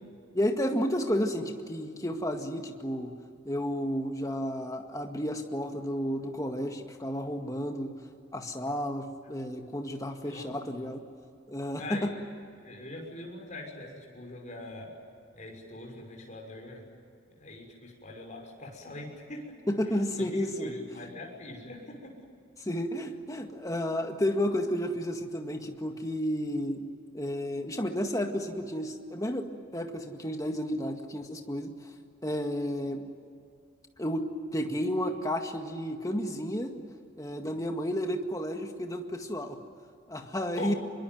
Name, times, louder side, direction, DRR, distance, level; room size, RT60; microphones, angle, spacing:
voice 1, 0.3-3.1 3.5-7.9 8.3-11.0 11.5-12.1 19.7-20.7 22.6-26.9 27.1-31.7 32.2-33.0 34.0-36.7 37.2-39.6 40.1-40.7, equal, 15° left, 4 dB, 1.9 m, -32 dB
voice 2, 11.8-12.1 12.6-14.9 15.3-16.9 17.4-19.6 20.1-22.1 40.6-40.8, left 2 dB, 35° left, 1 dB, 6.2 m, -42 dB
25.5 x 23.0 x 9.4 m, 2.4 s
head